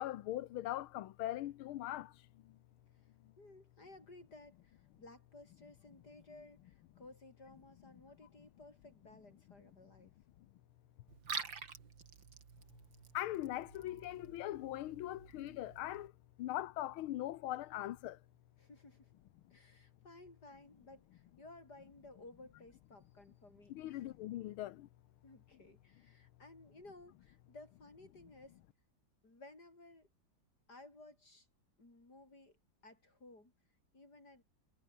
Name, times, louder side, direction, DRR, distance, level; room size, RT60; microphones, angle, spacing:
voice 1, 0.0-2.1 13.1-16.1 16.4-18.2 23.7-24.9, left 14 dB, 90° left, 1.6 m, -40 dB
voice 2, 3.0-10.1 18.6-19.1 19.5-24.1 25.2-28.6 29.2-30.1 30.7-31.5 31.8-33.5 33.9-34.4, left 2 dB, 50° left, 7.8 m, -58 dB
Liquid, 11.1-16.1, right 6 dB, 65° right, 3.2 m, -48 dB
omnidirectional pair, 2.3 m